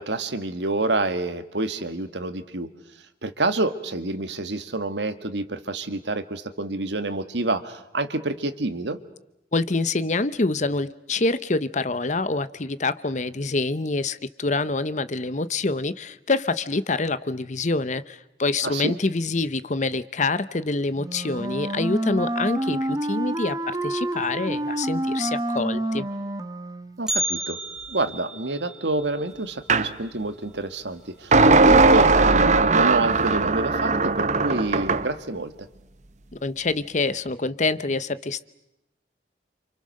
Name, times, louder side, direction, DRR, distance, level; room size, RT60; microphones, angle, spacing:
voice 1, 0.0-2.7 3.2-9.0 18.6-18.9 27.0-27.6 27.9-35.7, right 2 dB, 80° right, 10 dB, 1.7 m, -28 dB
voice 2, 9.5-26.1 36.3-38.5, left 3 dB, 45° left, 15 dB, 0.9 m, -26 dB
Wind instrument woodwind instrument, 20.9-27.0, right 1 dB, 20° right, 1.3 m, -28 dB
Bell, 27.1-31.2 31.4-31.5 32.0-32.1 32.9-33.0 33.8-34.1 34.4-34.5, equal, 5° right, 4.0 m, -33 dB
sound 1, 29.7-29.9 31.3-35.1, right 3 dB, 40° right, 1.0 m, -18 dB
29.0 x 27.0 x 6.6 m, 0.87 s
head